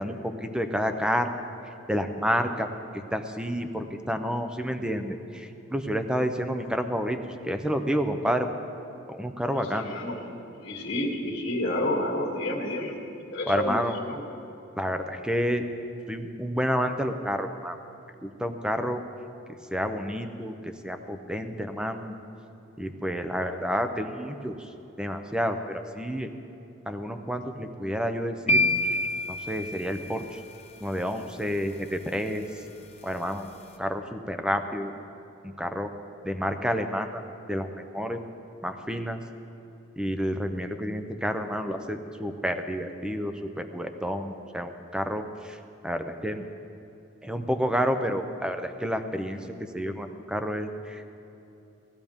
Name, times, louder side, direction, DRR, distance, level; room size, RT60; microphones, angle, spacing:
voice 1, 0.0-1.4 1.9-2.7 2.9-8.5 9.1-9.9 13.5-14.0 14.8-15.7 16.1-17.8 18.2-19.0 19.7-22.2 22.8-24.7 25.0-26.3 26.9-28.6 29.3-30.4 30.8-32.5 33.0-33.5 33.8-34.9 35.4-35.9 36.2-37.2 37.5-38.2 38.6-39.2 40.0-46.4 47.2-51.1, equal, 5° right, 7 dB, 0.6 m, -29 dB
voice 2, 9.5-10.2 10.6-13.0 13.3-14.2, left 1 dB, 60° left, -3 dB, 1.9 m, -30 dB
sound 1, 28.5-30.6, left 1 dB, 30° left, 1.1 m, -27 dB
18.0 x 13.0 x 3.6 m, 2.9 s
head